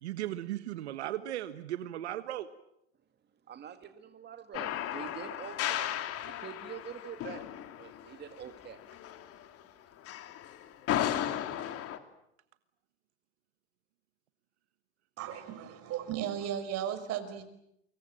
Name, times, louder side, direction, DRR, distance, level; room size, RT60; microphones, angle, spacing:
voice 1, 0.0-2.5, right 13 dB, 90° right, 12 dB, 1.4 m, -36 dB
voice 2, 3.5-6.0 6.2-8.8 9.3-9.5, right 8 dB, 30° right, 8 dB, 2.1 m, -46 dB
sound 1, 4.5-9.6 10.1-12.0, left 11 dB, 45° left, 2.9 m, -35 dB
voice 3, 15.2-17.4, right 10 dB, 50° right, 10 dB, 5.2 m, -35 dB
28.5 x 25.5 x 7.7 m, 0.79 s
supercardioid pair, 105°, 32 cm